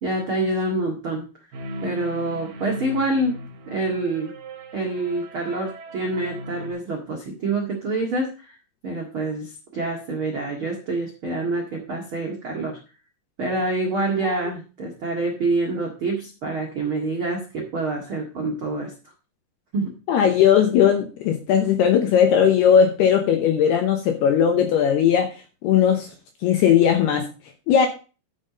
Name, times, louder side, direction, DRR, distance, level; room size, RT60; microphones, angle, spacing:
voice 1, 0.0-1.3 1.8-3.3 3.7-4.3 4.7-8.5 8.8-12.8 13.4-18.9 19.7-20.0, right 2 dB, 75° right, 0 dB, 1.2 m, -26 dB
sound 1, 1.5-6.7, right 1 dB, 60° right, 3.6 m, -38 dB
voice 2, 20.1-25.3 25.6-26.1 26.4-27.3 27.7-27.9, left 8 dB, 75° left, 5 dB, 2.4 m, -18 dB
12.0 x 5.7 x 5.2 m, 0.34 s
omnidirectional pair, 5.8 m